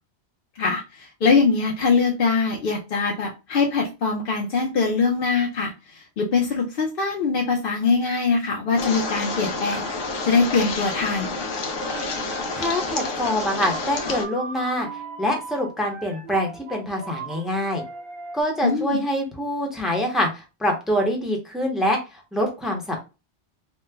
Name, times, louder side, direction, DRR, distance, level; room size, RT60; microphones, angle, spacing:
voice 1, 0.6-9.9 10.3-11.4 18.6-19.0, left 4 dB, 55° left, -1 dB, 0.7 m, -22 dB
sound 1, 8.8-14.2, left 3 dB, 90° left, 1.1 m, -29 dB
sound 2, 11.7-13.1 13.3-18.4, right 4 dB, 30° right, 0.9 m, -38 dB
voice 2, 12.6-14.9 15.2-17.8 18.3-23.0, equal, ahead, 1 dB, 0.6 m, -25 dB
3.1 x 2.1 x 3.2 m, 0.28 s
omnidirectional pair, 1.3 m